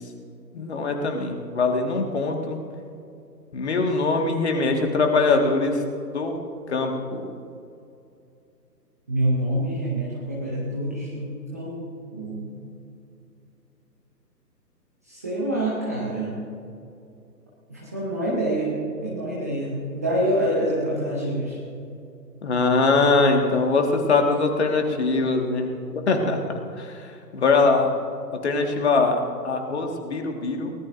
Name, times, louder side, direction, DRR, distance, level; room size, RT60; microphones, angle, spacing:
voice 1, 0.5-2.6 3.5-5.8 6.1-6.4 6.7-7.3 22.4-26.4 26.8-27.9 28.4-30.7, left 3 dB, 40° left, 3 dB, 1.8 m, -22 dB
voice 2, 9.1-11.8 12.1-12.4 15.1-16.4 17.7-18.7 19.0-21.6, right 1 dB, 10° right, -7 dB, 0.7 m, -26 dB
23.0 x 18.0 x 2.6 m, 2.6 s
figure-of-eight pair, 145°, 50 cm